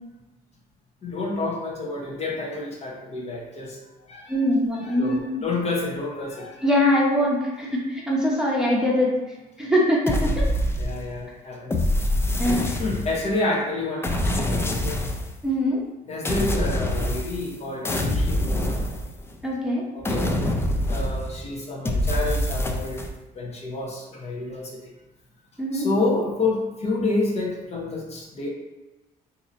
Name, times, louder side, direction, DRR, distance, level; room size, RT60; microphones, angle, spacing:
voice 1, 1.0-3.8 4.1-4.4 4.8-6.7 10.8-11.7 12.8-15.0 16.1-18.8 19.9-20.3 20.9-23.0 23.3-24.9 25.7-28.5, left 2 dB, 40° left, -2 dB, 0.8 m, -29 dB
voice 2, 4.3-5.2 6.6-9.2 9.6-10.5 12.4-12.8 15.4-15.8 19.4-19.8 25.6-25.9, equal, 5° right, -5 dB, 0.8 m, -22 dB
sound 1, 10.1-11.2 11.7-13.3 14.0-15.4 16.2-17.6 17.8-19.4 20.0-21.4 21.8-23.1, left 1 dB, 15° left, 0.3 m, -25 dB
2.8 x 2.6 x 3.9 m, 1.1 s
cardioid pair, 110°, 17 cm